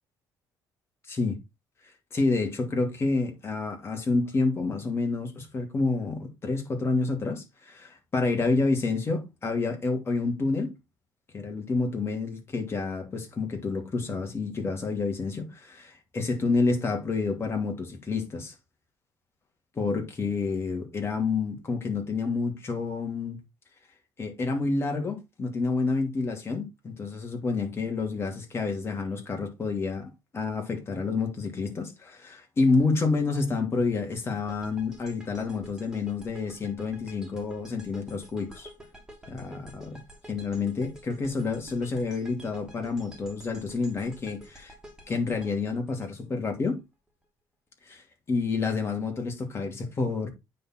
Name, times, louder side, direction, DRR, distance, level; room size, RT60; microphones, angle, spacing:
voice 1, 2.1-10.7 11.3-18.5 19.8-23.4 24.2-38.7 39.3-40.0 40.3-44.7 45.1-46.8 47.9-48.0 48.3-50.3, left 3 dB, 30° left, 2.8 m, -29 dB
sound 1, 34.5-46.7, right 1 dB, 5° right, 2.8 m, -49 dB
9.2 x 4.2 x 4.4 m
cardioid pair, 110°, 8 cm